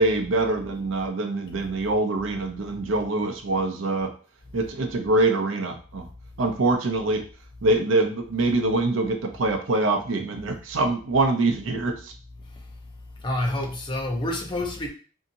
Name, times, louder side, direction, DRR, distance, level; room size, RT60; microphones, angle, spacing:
voice 1, 0.0-4.1 4.5-6.1 6.4-7.2 7.6-12.1, right 2 dB, 85° right, 0.6 m, -24 dB
voice 2, 13.2-14.9, left 1 dB, 25° left, 0.5 m, -28 dB
2.7 x 2.7 x 2.6 m
head